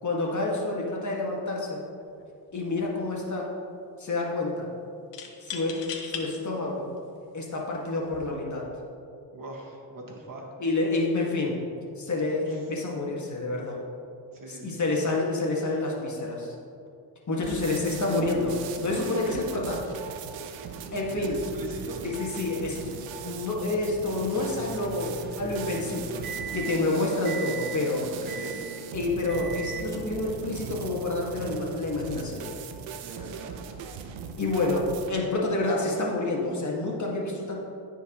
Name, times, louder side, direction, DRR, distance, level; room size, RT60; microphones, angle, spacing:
voice 1, 0.0-1.8 2.5-3.5 4.0-4.7 5.4-6.9 7.3-8.7 10.6-11.6 12.0-13.8 14.5-16.5 17.3-18.6 18.8-19.8 20.9-21.4 22.0-26.2 26.5-28.1 28.9-32.5 34.4-37.5, left 2 dB, 40° left, -2 dB, 1.8 m, -28 dB
sound 1, 2.0-2.2 2.5-3.2 5.1-6.3 7.0-7.1 8.0-8.3, left 7 dB, 80° left, 1.0 m, -38 dB
voice 2, 9.3-10.4 12.5-12.6 14.3-14.8 20.9-22.0 28.2-28.6 33.0-33.6, right 2 dB, 50° right, -1 dB, 1.6 m, -41 dB
sound 2, 17.4-35.1, right 6 dB, 85° right, 0.7 m, -39 dB
Microwave oven, 24.4-26.9 27.2-27.8 28.3-28.9 29.3-29.9, right 6 dB, 25° right, 0.5 m, -39 dB
13.5 x 4.7 x 3.0 m, 2.5 s
supercardioid pair, 70°, 43 cm